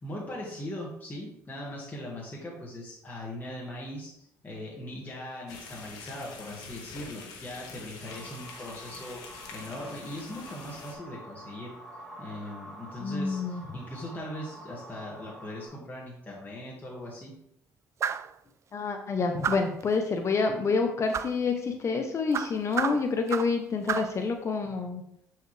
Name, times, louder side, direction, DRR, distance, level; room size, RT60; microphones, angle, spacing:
voice 1, 0.0-11.7 12.2-17.3, left 1 dB, 25° left, -4 dB, 1.9 m, -40 dB
sound 1, 5.5-10.9, left 4 dB, 85° left, 1.4 m, -45 dB
sound 2, 8.0-15.7, right 1 dB, 5° left, 2.7 m, -47 dB
voice 2, 13.0-13.6 18.7-25.0, left 4 dB, 45° left, 5 dB, 0.8 m, -28 dB
sound 3, 18.0-18.3 19.4-19.8 21.1-21.4 22.3-23.6 23.9-24.2, right 7 dB, 45° right, 0.3 m, -31 dB
7.6 x 4.7 x 3.3 m, 0.74 s
supercardioid pair, 75°, 7 cm